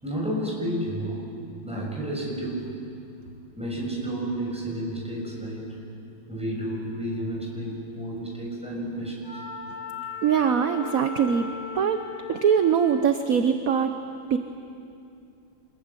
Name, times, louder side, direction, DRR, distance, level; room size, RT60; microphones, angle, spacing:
voice 1, 0.0-1.2 1.6-2.7 3.6-5.7 6.3-9.4, right 1 dB, 5° right, -3 dB, 6.6 m, -31 dB
Wind instrument woodwind instrument, 9.2-13.0, left 6 dB, 30° left, 5.3 m, -37 dB
voice 2, 10.2-11.5 11.7-12.0 12.3-13.9 14.3-14.4, right 7 dB, 55° right, 7 dB, 1.2 m, -22 dB
27.0 x 22.0 x 9.7 m, 2.6 s
omnidirectional pair, 2.1 m